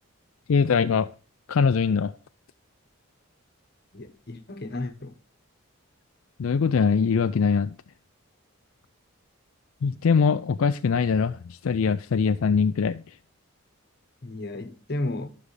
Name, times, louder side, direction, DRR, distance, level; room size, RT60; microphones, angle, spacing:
voice 1, 0.5-1.1 1.5-2.1 6.4-7.7 9.8-13.0, left 5 dB, 75° left, 0.4 m, -22 dB
voice 2, 3.9-5.2 14.2-15.3, left 2 dB, 45° left, 1.1 m, -33 dB
12.0 x 6.3 x 3.2 m
head